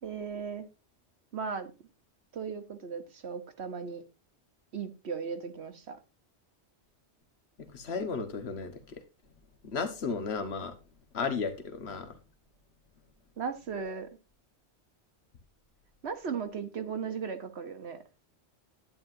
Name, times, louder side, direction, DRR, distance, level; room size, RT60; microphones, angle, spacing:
voice 1, 0.0-0.7 1.3-1.7 2.3-4.0 4.7-6.0 13.4-14.1 16.0-18.0, right 6 dB, 65° right, 1.3 m, -36 dB
voice 2, 7.6-9.0 9.6-10.8 11.1-12.2, left 5 dB, 65° left, 1.5 m, -34 dB
11.0 x 9.3 x 2.6 m
omnidirectional pair, 1.2 m